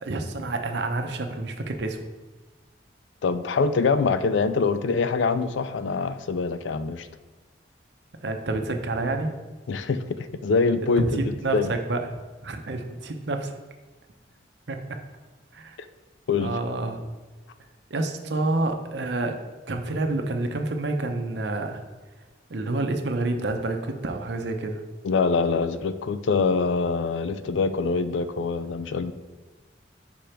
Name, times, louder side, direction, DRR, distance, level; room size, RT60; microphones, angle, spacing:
voice 1, 0.0-2.0 8.2-9.3 11.0-12.1 12.4-13.6 14.7-15.0 15.5-15.8 16.4-17.0 17.9-21.8 22.5-24.8, right 2 dB, 70° right, 5 dB, 0.7 m, -28 dB
voice 2, 3.2-7.1 9.7-11.7 16.3-16.5 25.0-29.1, left 4 dB, 80° left, 12 dB, 0.4 m, -24 dB
5.2 x 5.0 x 4.4 m, 1.3 s
head